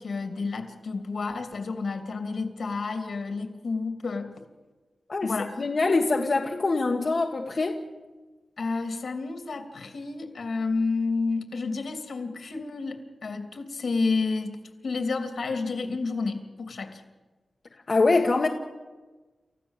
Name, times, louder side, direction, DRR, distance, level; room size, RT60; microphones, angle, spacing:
voice 1, 0.0-4.3 5.2-5.5 8.6-14.5 14.8-17.0, left 4 dB, 70° left, 6 dB, 2.9 m, -30 dB
voice 2, 5.6-7.8 17.9-18.5, left 3 dB, 45° left, 1 dB, 1.5 m, -24 dB
29.5 x 15.0 x 7.5 m, 1.3 s
wide cardioid pair, 105°, 0 cm